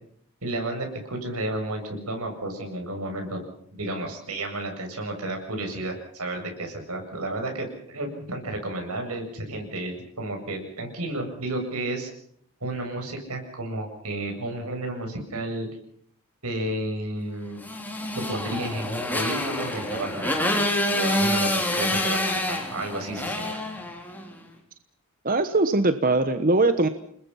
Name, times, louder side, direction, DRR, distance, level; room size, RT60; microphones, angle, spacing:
voice 1, 0.4-3.4 3.7-12.1 12.6-15.7 16.4-17.6 18.1-23.5, right 1 dB, 85° right, 4 dB, 7.7 m, -32 dB
Motorcycle, 17.6-24.3, left 1 dB, 10° left, 4.0 m, -27 dB
voice 2, 25.2-26.9, right 2 dB, 40° right, 9 dB, 1.2 m, -21 dB
29.0 x 20.5 x 5.8 m, 0.63 s
head